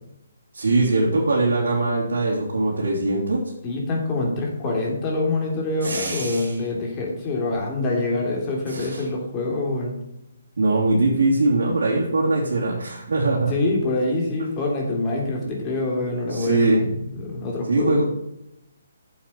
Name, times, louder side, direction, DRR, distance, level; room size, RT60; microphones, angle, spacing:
voice 1, 0.5-3.4 5.8-6.6 8.7-9.0 10.6-13.5 15.4-15.6 16.3-16.8 17.7-18.0, right 2 dB, 75° right, -5 dB, 2.8 m, -21 dB
voice 2, 3.6-9.9 13.5-18.0, left 2 dB, 25° left, -1 dB, 3.0 m, -25 dB
9.0 x 7.3 x 4.5 m, 0.85 s
hypercardioid pair, 155°, 0 cm